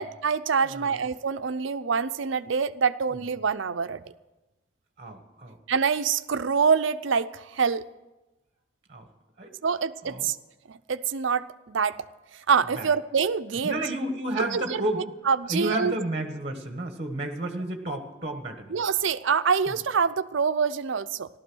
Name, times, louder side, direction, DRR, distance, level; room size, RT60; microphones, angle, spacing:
voice 1, 0.0-4.0 5.7-7.8 9.6-10.4 10.7-12.0 12.5-13.8 14.4-14.8 15.3-15.9 18.7-21.3, right 6 dB, 75° right, 12 dB, 0.6 m, -25 dB
voice 2, 0.6-1.0 3.1-3.2 5.0-5.6 8.9-9.1 9.4-9.5 10.1-10.3 12.7-12.9 13.6-15.1 15.5-18.7 19.7-19.8, right 1 dB, 30° right, 6 dB, 1.3 m, -31 dB
15.0 x 12.5 x 6.2 m, 1.1 s
head